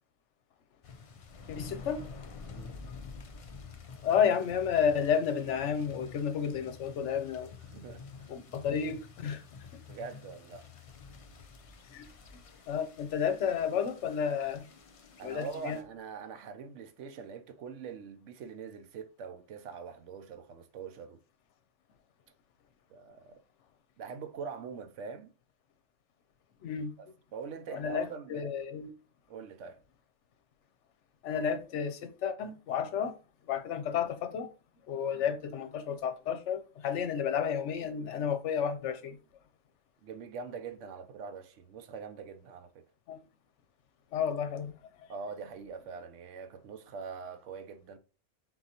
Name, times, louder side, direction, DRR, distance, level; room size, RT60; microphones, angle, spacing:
sound 1, 0.8-15.8, left 5 dB, 60° left, 0.3 m, -49 dB
voice 1, 1.5-2.0 4.0-7.5 8.3-9.4 11.9-12.1 12.7-14.7 15.2-15.8 26.6-26.9 27.7-28.9 31.2-33.1 33.5-34.5 34.9-39.2 43.1-43.2 44.1-44.8, left 7 dB, 75° left, 1.0 m, -31 dB
voice 2, 7.7-8.1 9.8-10.7 15.2-21.2 22.9-23.4 24.0-25.3 27.0-27.1 27.3-28.5 29.3-29.8 35.1-35.2 40.0-42.8 45.1-48.0, right 5 dB, 80° right, 1.0 m, -43 dB
4.4 x 3.8 x 2.8 m
omnidirectional pair, 1.2 m